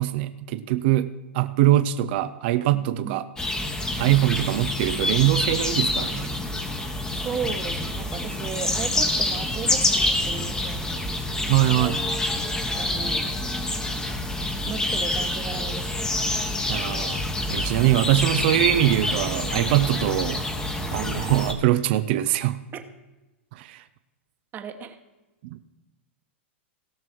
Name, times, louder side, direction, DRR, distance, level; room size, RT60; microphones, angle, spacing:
voice 1, 0.0-3.2 4.0-6.3 11.5-12.0 16.7-17.2 17.5-20.4 20.9-22.6 23.5-23.8 25.5-25.6, right 14 dB, 55° right, 11 dB, 0.5 m, -22 dB
sound 1, 3.4-21.5, left 1 dB, 10° left, 1.1 m, -27 dB
voice 2, 7.2-10.9 12.7-13.2 14.6-15.9 22.7-22.8 24.5-25.0, right 7 dB, 30° right, 7 dB, 1.2 m, -35 dB
17.5 x 6.1 x 4.5 m, 1.1 s
hypercardioid pair, 125°, 7 cm